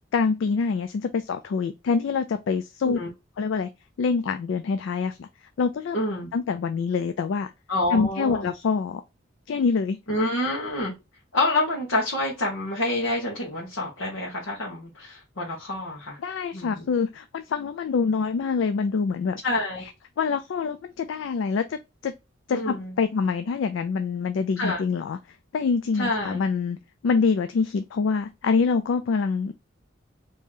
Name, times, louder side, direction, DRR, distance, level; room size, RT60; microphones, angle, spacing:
voice 1, 0.1-3.0 3.4-3.7 4.0-5.3 5.6-6.0 6.3-7.5 7.9-9.0 9.5-10.0 16.2-19.4 19.8-19.9 20.2-22.1 22.5-25.2 25.5-26.8 27.0-29.5, left 5 dB, 70° left, 0.3 m, -25 dB
voice 2, 5.9-6.3 7.7-8.5 10.1-10.9 11.3-16.2 16.5-16.9 19.4-19.9 22.5-22.9 24.6-24.8 25.9-26.4, left 1 dB, 85° left, 1.1 m, -27 dB
3.0 x 2.7 x 3.5 m
head